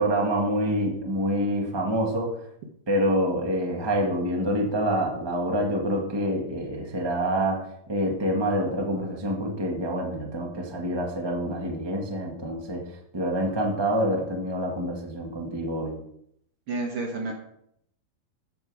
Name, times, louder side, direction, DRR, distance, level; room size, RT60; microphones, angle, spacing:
voice 1, 0.0-2.4 2.9-12.8 13.1-15.9, equal, 40° right, 0 dB, 0.3 m, -26 dB
voice 2, 16.7-17.3, right 3 dB, 60° right, 1 dB, 1.5 m, -30 dB
15.5 x 5.8 x 4.9 m, 0.73 s
omnidirectional pair, 4.2 m